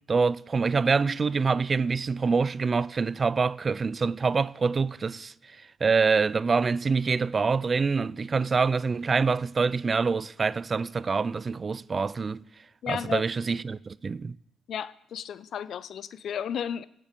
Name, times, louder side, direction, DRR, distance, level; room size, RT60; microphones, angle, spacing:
voice 1, 0.1-12.4 12.9-14.4, right 4 dB, 40° right, 0.4 m, -26 dB
voice 2, 12.8-13.2 14.7-16.8, left 8 dB, 70° left, 0.6 m, -33 dB
17.0 x 7.6 x 6.7 m
supercardioid pair, 55°, 0 cm